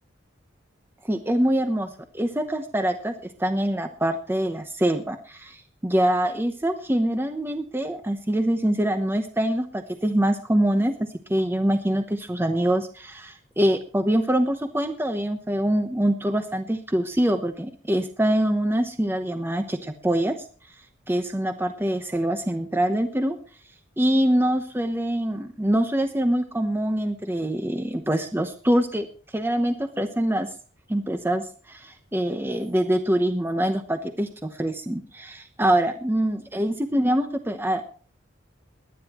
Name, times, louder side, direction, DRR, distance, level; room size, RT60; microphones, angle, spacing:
voice 1, 1.0-1.9 2.1-3.1 3.4-20.3 21.1-23.4 24.0-29.1 29.3-30.5 30.9-37.8, right 1 dB, 10° right, 7 dB, 0.9 m, -24 dB
22.5 x 10.0 x 3.0 m, 0.41 s
head